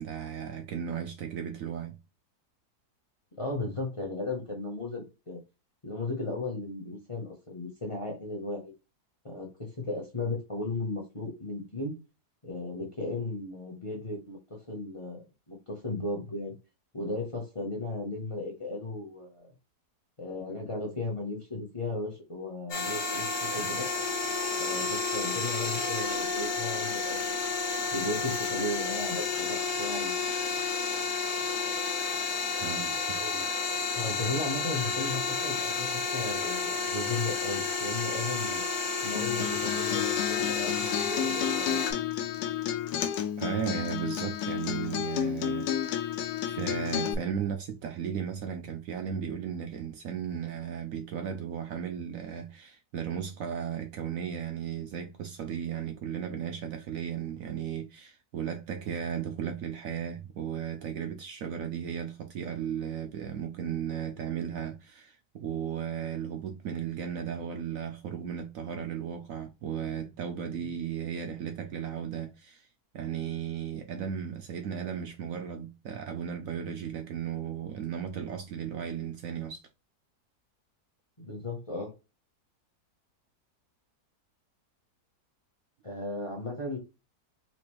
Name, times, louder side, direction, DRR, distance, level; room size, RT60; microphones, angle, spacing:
voice 1, 0.0-2.0 32.6-33.2 43.4-45.7 46.0-46.1 46.5-72.7 72.9-79.7, right 8 dB, 70° right, 0.9 m, -35 dB
voice 2, 3.4-5.4 5.8-8.7 9.2-11.9 12.4-16.5 16.9-19.5 20.2-23.9 24.6-30.1 33.2-33.5 34.0-38.6 39.0-41.8 70.5-70.6 81.2-81.9 85.8-86.8, left 2 dB, 25° left, 0.7 m, -36 dB
sound 1, 22.7-41.9, left 4 dB, 60° left, 1.3 m, -31 dB
Acoustic guitar, 39.2-47.1, left 9 dB, 75° left, 1.1 m, -32 dB
4.3 x 2.5 x 3.0 m
omnidirectional pair, 1.7 m